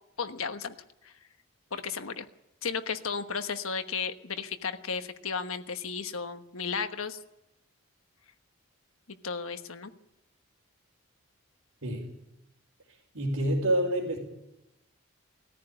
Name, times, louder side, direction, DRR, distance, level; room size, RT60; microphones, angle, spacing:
voice 1, 0.2-0.7 1.0-1.1 1.7-2.3 2.6-7.2 9.1-9.9, left 5 dB, 75° left, 8 dB, 1.2 m, -34 dB
voice 2, 13.1-14.2, right 1 dB, 75° right, -4 dB, 4.6 m, -27 dB
20.0 x 14.5 x 9.9 m, 0.91 s
head